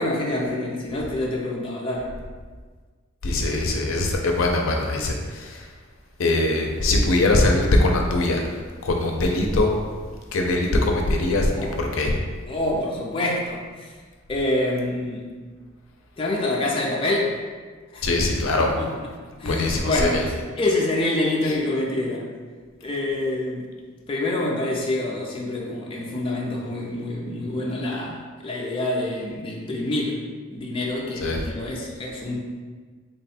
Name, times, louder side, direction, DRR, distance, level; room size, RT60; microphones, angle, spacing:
voice 1, 0.0-2.1 11.5-11.7 12.5-14.0 14.3-15.3 16.2-17.4 17.9-18.1 18.6-22.3 22.8-23.7 24.1-30.2 30.5-32.4, left 1 dB, 25° left, -3 dB, 0.5 m, -26 dB
voice 2, 3.2-5.7 6.2-9.7 10.3-12.2 18.0-18.7 19.5-20.2 21.4-21.5 31.2-31.4, left 2 dB, 80° left, 1 dB, 0.5 m, -22 dB
3.6 x 2.2 x 4.2 m, 1.5 s
head